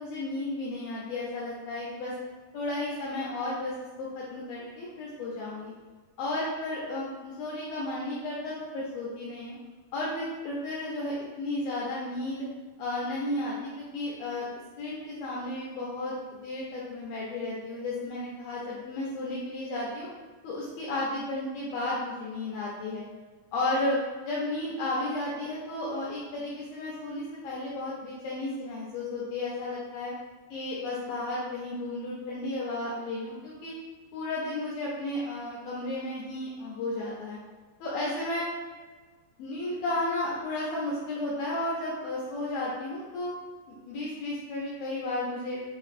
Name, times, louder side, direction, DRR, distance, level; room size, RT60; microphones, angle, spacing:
voice 1, 0.0-2.1 2.5-5.7 6.2-9.6 9.9-12.5 12.8-14.5 14.8-20.1 20.4-23.0 23.5-24.0 24.3-30.1 30.5-33.7 34.1-37.4 37.8-38.5 39.4-43.3 43.8-45.6, left 2 dB, 85° left, -5 dB, 2.0 m, -33 dB
6.3 x 2.5 x 2.4 m, 1.3 s
omnidirectional pair, 4.8 m